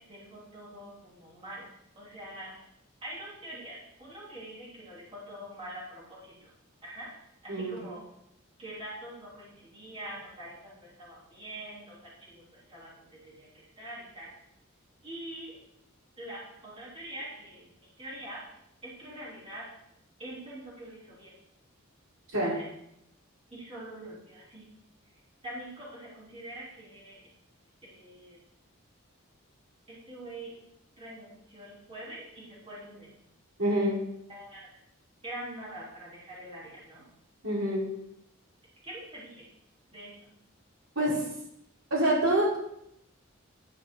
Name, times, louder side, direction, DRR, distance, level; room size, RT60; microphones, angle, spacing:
voice 1, 0.0-1.7 2.0-2.6 3.0-6.5 6.8-7.1 7.4-8.0 8.6-14.3 15.0-15.6 16.2-17.7 18.0-18.4 18.8-19.7 20.2-21.3 22.4-22.7 23.5-24.7 25.4-27.2 27.8-28.4 29.9-30.5 31.0-33.1 34.3-34.6 35.2-37.0 38.8-39.5 39.9-40.3, right 1 dB, 25° right, -7 dB, 3.5 m, -44 dB
voice 2, 7.5-7.8 22.3-22.5 33.6-34.0 37.4-37.9 40.9-41.3 41.9-42.6, right 1 dB, 80° right, -5 dB, 4.5 m, -26 dB
11.0 x 9.5 x 3.9 m, 0.78 s
head